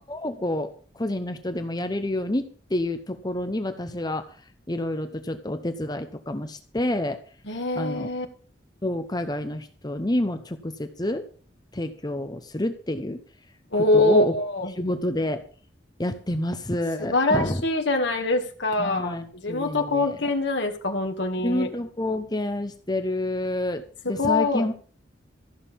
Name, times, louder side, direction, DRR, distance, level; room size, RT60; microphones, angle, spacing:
voice 1, 0.1-4.3 4.7-7.2 7.7-8.1 8.8-11.3 11.7-13.2 13.8-14.3 14.7-15.4 16.0-17.6 18.8-20.2 21.4-24.7, left 1 dB, 20° left, 9 dB, 0.9 m, -28 dB
voice 2, 7.5-8.3 13.7-14.7 17.0-19.2 19.4-21.7 24.0-24.7, left 2 dB, 65° left, 3 dB, 2.2 m, -24 dB
14.5 x 6.6 x 7.2 m, 0.41 s
head